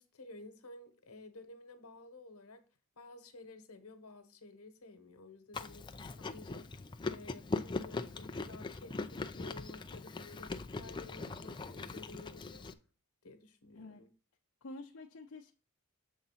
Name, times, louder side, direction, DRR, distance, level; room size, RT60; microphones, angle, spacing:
voice 1, 0.0-2.6 3.0-6.8 7.0-12.7 13.2-14.1, left 2 dB, 85° left, 1.2 m, -53 dB
Chewing mastication, 5.5-12.7, left 3 dB, 20° left, 0.4 m, -41 dB
voice 2, 14.6-15.5, left 2 dB, 70° left, 0.8 m, -48 dB
7.2 x 3.9 x 5.6 m
head